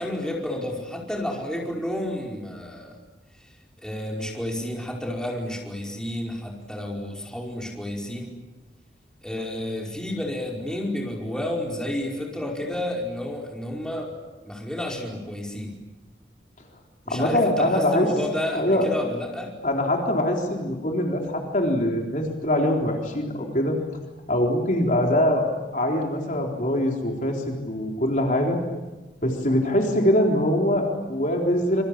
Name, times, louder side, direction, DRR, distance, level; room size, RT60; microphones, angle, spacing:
voice 1, 0.0-3.0 3.8-8.3 9.2-14.1 14.4-15.7 17.0-19.5, left 1 dB, 5° left, -1 dB, 5.0 m, -31 dB
voice 2, 17.1-18.1 18.5-18.9 19.6-23.8 24.3-25.4 25.7-28.6 29.2-31.8, left 1 dB, 45° left, 1 dB, 3.8 m, -23 dB
26.5 x 24.5 x 8.7 m, 1.1 s
head